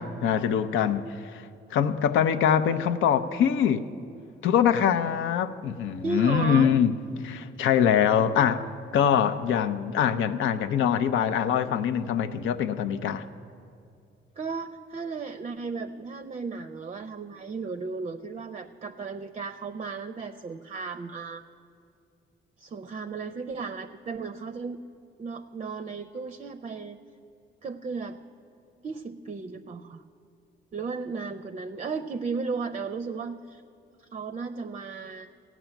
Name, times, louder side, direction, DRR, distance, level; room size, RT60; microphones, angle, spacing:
voice 1, 0.0-3.9 4.4-6.9 7.2-8.7 8.9-13.2, left 8 dB, 80° left, 9 dB, 0.6 m, -24 dB
voice 2, 6.0-6.8 14.4-21.4 22.6-24.8 25.2-27.0 27.6-28.2 28.8-30.0 30.7-33.6 34.1-35.3, right 4 dB, 35° right, 9 dB, 0.5 m, -34 dB
15.5 x 6.2 x 9.0 m, 2.5 s
cardioid pair, 90°, 20 cm